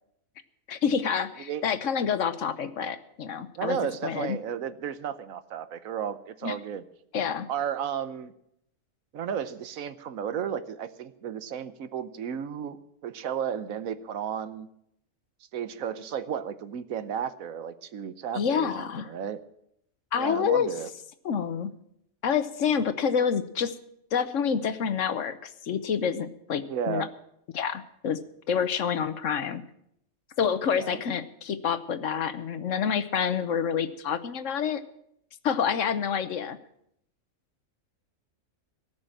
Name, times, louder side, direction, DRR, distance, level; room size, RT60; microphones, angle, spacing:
voice 1, 0.7-4.4 6.4-6.5 7.1-7.5 18.3-19.1 20.1-20.7 21.2-21.7 22.2-23.7 24.1-27.1 27.5-28.2 28.5-29.6 30.4-34.8 35.4-36.6, left 7 dB, 70° left, 12 dB, 1.2 m, -28 dB
voice 2, 3.5-6.8 7.5-8.3 9.1-12.8 13.0-14.7 15.5-19.4 20.1-20.9 26.6-27.1 30.7-31.0, right 8 dB, 85° right, 13 dB, 1.3 m, -33 dB
18.5 x 6.2 x 8.9 m, 0.74 s
omnidirectional pair, 1.4 m